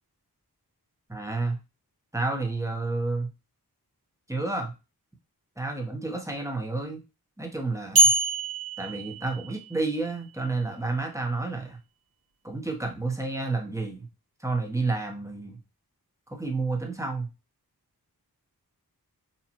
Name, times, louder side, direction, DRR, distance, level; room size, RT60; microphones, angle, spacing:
voice 1, 1.1-1.6 2.1-3.3 4.3-4.7 5.6-7.0 7.4-8.1 8.8-11.8 12.4-14.1 14.4-15.6 16.3-17.3, right 3 dB, 10° right, 2 dB, 0.9 m, -30 dB
sound 1, 8.0-10.0, right 2 dB, 70° right, 1.1 m, -24 dB
4.2 x 2.5 x 2.9 m, 0.28 s
wide cardioid pair, 50°, 38 cm